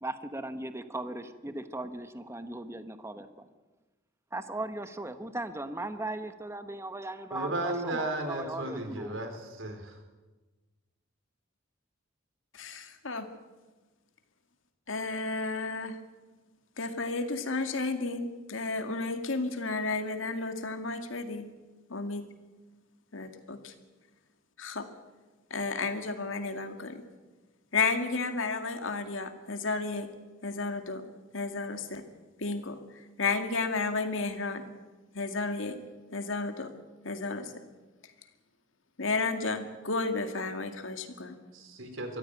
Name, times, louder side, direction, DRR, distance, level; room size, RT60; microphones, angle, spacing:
voice 1, 0.0-3.5 4.3-9.2, right 2 dB, 15° right, 1.1 m, -38 dB
voice 2, 7.3-10.0 41.5-42.2, right 2 dB, 85° right, 3.9 m, -34 dB
voice 3, 12.5-13.3 14.9-16.0 16.8-21.5 21.9-22.2 23.1-23.7 24.6-24.9 25.5-27.0 27.7-30.1 30.4-31.0 31.3-32.0 32.4-32.8 33.2-34.6 35.1-35.8 36.1-36.7 37.0-37.5 39.0-41.3, left 3 dB, 80° left, 2.1 m, -32 dB
23.0 x 14.5 x 9.4 m
head